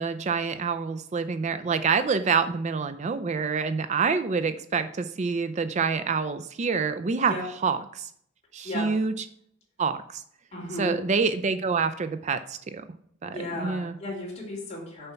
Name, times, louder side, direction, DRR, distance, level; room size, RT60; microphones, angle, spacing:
voice 1, 0.0-7.3 7.6-8.1 8.5-9.3 9.8-10.2 10.8-12.8 13.2-13.9, right 5 dB, 35° right, 10 dB, 0.4 m, -27 dB
voice 2, 8.6-8.9 10.5-11.0 13.3-15.1, left 1 dB, 35° left, -3 dB, 3.1 m, -34 dB
6.8 x 5.5 x 5.7 m, 0.67 s
head